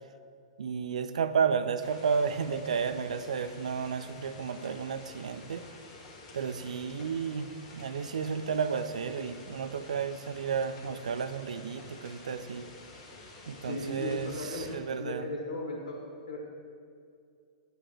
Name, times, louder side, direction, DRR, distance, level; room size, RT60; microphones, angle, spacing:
voice 1, 0.6-5.7 6.3-12.7 13.5-15.3, right 6 dB, 80° right, 11 dB, 0.4 m, -32 dB
sound 1, 1.8-14.8, left 2 dB, 40° left, 1.2 m, -50 dB
voice 2, 13.7-14.7 15.0-16.0 16.3-16.4, left 2 dB, 75° left, -3 dB, 1.2 m, -36 dB
7.9 x 3.2 x 6.0 m, 2.3 s
hypercardioid pair, 115°, 4 cm